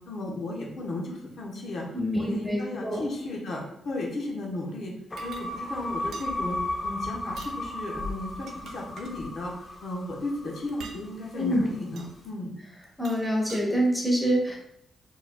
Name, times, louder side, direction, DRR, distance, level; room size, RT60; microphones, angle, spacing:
voice 1, 0.1-1.9 2.1-4.9 5.2-9.5 9.8-12.5, left 2 dB, 60° left, -2 dB, 1.1 m, -35 dB
voice 2, 1.9-3.0 11.3-11.7 13.0-14.6, equal, 5° left, -3 dB, 1.2 m, -26 dB
sound 1, 5.1-11.5, left 1 dB, 25° left, 0.9 m, -35 dB
sound 2, 5.2-5.5 6.1-6.3 7.3-7.6 8.3-9.2 10.7-11.0 12.0-12.1 12.8-13.6, right 5 dB, 70° right, 0.5 m, -45 dB
4.6 x 4.2 x 2.3 m, 0.74 s
cardioid pair, 125°, 0 cm